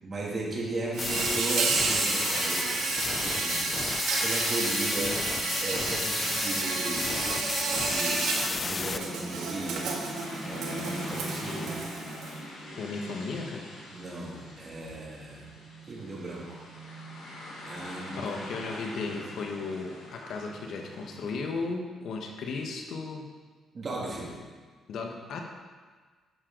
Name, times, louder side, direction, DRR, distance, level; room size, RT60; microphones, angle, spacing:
voice 1, 0.0-3.7 4.0-7.5 7.9-9.9 10.4-11.9 13.9-15.5 15.9-16.6 17.6-18.3 23.7-24.4, right 2 dB, 40° right, -3 dB, 2.6 m, -36 dB
Insect, 0.9-12.4, right 4 dB, 80° right, 1.5 m, -31 dB
sound 1, 1.0-9.0, left 4 dB, 40° left, 0.4 m, -33 dB
sound 2, 5.1-21.6, left 1 dB, 90° left, 3.0 m, -43 dB
voice 2, 12.8-13.6 17.8-23.3 24.9-25.4, left 4 dB, 70° left, 2 dB, 1.2 m, -35 dB
10.5 x 6.8 x 3.9 m, 1.5 s
cardioid pair, 90°, 0 cm